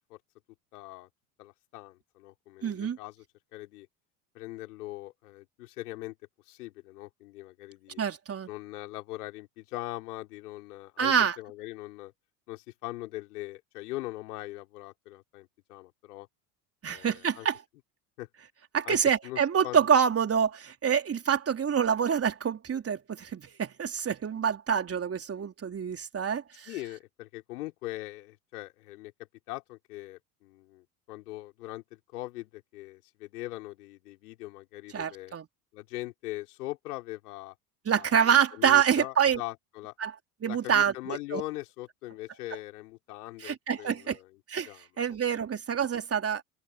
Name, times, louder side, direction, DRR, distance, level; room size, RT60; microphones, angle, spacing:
voice 1, 0.7-1.1 1.4-3.2 3.5-3.9 4.3-6.2 6.4-8.0 8.5-12.1 12.5-16.3 16.9-17.5 18.2-18.3 18.8-19.0 19.2-19.9 26.7-29.1 29.5-35.3 35.7-37.5 37.9-39.9 40.4-44.3 44.7-45.2, left 18 dB, 70° left, 4.5 m, -41 dB
voice 2, 2.6-3.0 8.0-8.5 11.0-11.4 16.8-17.6 18.7-26.7 34.9-35.5 37.9-39.4 40.0-40.1 40.4-41.4 43.4-44.2 44.5-44.7 45.0-46.4, right 8 dB, 30° right, 3.7 m, -26 dB
open air
figure-of-eight pair, 70°, 47 cm